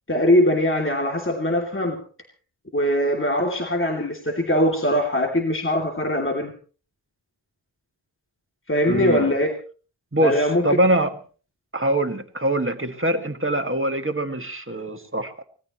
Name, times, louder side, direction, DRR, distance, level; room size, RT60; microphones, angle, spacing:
voice 1, 0.1-2.0 2.7-6.5 8.7-9.5 10.2-10.8, left 1 dB, 25° left, 1 dB, 2.9 m, -21 dB
voice 2, 8.9-9.3 10.1-11.1 11.7-15.4, right 1 dB, 25° right, 5 dB, 2.1 m, -23 dB
24.0 x 18.5 x 3.1 m, 0.40 s
wide cardioid pair, 45°, 47 cm